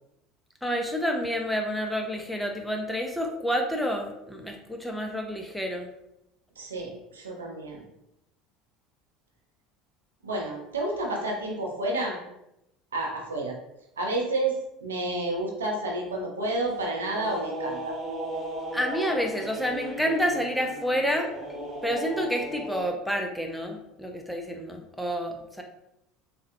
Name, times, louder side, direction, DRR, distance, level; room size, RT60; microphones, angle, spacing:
voice 1, 0.6-5.9 18.7-21.3 21.8-25.6, equal, ahead, 2 dB, 0.4 m, -29 dB
voice 2, 6.6-7.8 10.2-12.2 12.9-13.5 14.0-17.9, right 2 dB, 75° right, -1 dB, 0.6 m, -30 dB
sound 1, 16.4-22.8, right 1 dB, 15° right, 1.2 m, -36 dB
3.7 x 2.1 x 2.6 m, 0.85 s
figure-of-eight pair, 65°, 0 cm